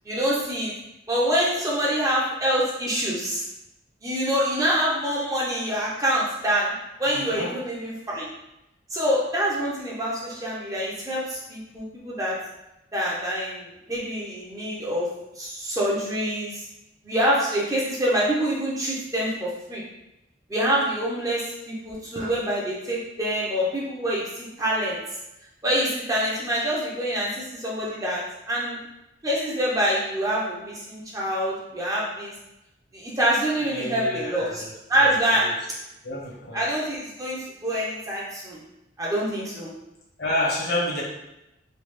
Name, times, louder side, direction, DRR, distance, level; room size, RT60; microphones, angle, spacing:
voice 1, 0.1-0.7 1.1-3.4 4.0-6.7 7.0-8.3 8.9-12.4 12.9-15.1 15.4-16.6 17.0-19.8 20.5-25.0 25.6-28.8 29.2-32.3 32.9-34.6 34.9-35.5 36.5-38.6 39.0-39.7, equal, 20° right, -5 dB, 0.6 m, -26 dB
voice 2, 7.1-7.5 33.6-35.6 36.0-36.7 40.2-41.0, left 1 dB, 55° left, -4 dB, 0.9 m, -30 dB
3.2 x 2.3 x 3.1 m, 0.90 s
head